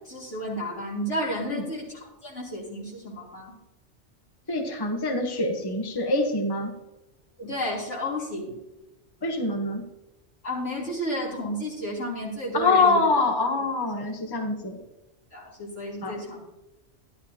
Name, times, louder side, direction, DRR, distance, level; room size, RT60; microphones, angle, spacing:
voice 1, 0.0-3.5 7.4-8.5 10.4-13.0 15.3-16.4, equal, 85° left, -4 dB, 3.6 m, -32 dB
voice 2, 4.5-6.7 9.2-9.8 12.5-14.8 16.0-16.2, left 3 dB, 20° left, 4 dB, 1.0 m, -25 dB
12.5 x 11.0 x 2.8 m, 1.0 s
omnidirectional pair, 1.2 m